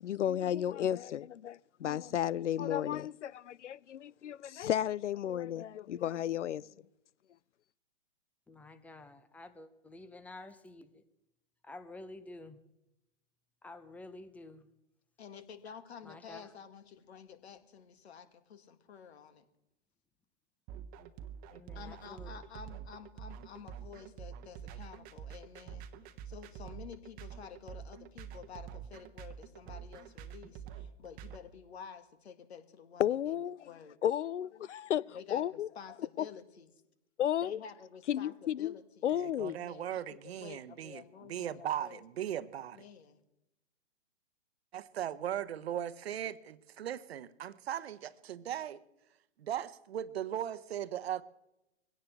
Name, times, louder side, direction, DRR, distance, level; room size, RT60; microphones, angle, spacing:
voice 1, 0.0-6.7 33.0-33.6 34.0-35.7 36.2-36.3 37.2-37.6 38.1-38.7 39.0-39.6, left 10 dB, 80° left, 0.6 m, -33 dB
voice 2, 8.5-11.0 11.6-12.6 13.6-14.7 16.0-16.5 21.5-22.4, left 2 dB, 5° left, 0.5 m, -50 dB
voice 3, 15.2-19.5 21.7-25.9 26.3-33.4 33.6-34.0 35.1-36.7 37.4-39.1 39.4-42.0 42.7-43.2, left 7 dB, 65° left, 2.0 m, -50 dB
sound 1, 20.7-31.4, right 8 dB, 25° right, 1.0 m, -46 dB
voice 4, 39.1-42.8 44.7-48.8 49.4-51.2, right 10 dB, 60° right, 1.0 m, -38 dB
22.0 x 17.0 x 3.4 m
hypercardioid pair, 130°, 35 cm